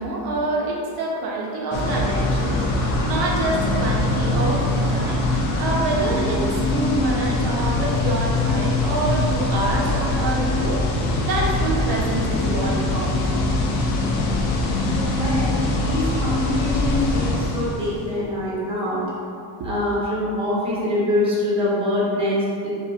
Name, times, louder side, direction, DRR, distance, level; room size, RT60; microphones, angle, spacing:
voice 1, 0.0-10.8 11.2-13.6 19.6-19.7, right 2 dB, 55° right, -1 dB, 0.5 m, -26 dB
sound 1, 1.7-18.1, left 2 dB, 70° left, 0.6 m, -23 dB
voice 2, 15.0-19.0 19.6-22.7, left 1 dB, 10° right, -8 dB, 0.8 m, -24 dB
2.5 x 2.1 x 2.3 m, 2.4 s
supercardioid pair, 100°, 48 cm